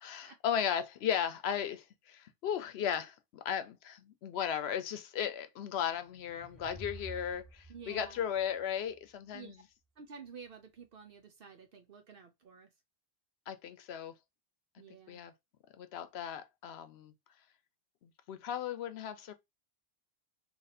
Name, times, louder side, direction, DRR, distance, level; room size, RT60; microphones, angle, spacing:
voice 1, 0.0-9.6 13.5-14.1 15.1-15.3 15.8-17.1 18.0-19.3, left 9 dB, 85° left, 0.9 m, -36 dB
sound 1, 5.9-9.3, right 2 dB, ahead, 0.9 m, -51 dB
voice 2, 7.7-8.2 9.3-9.6 10.0-12.7 14.8-15.2, right 6 dB, 65° right, 0.9 m, -51 dB
2.9 x 2.6 x 4.1 m
omnidirectional pair, 1.0 m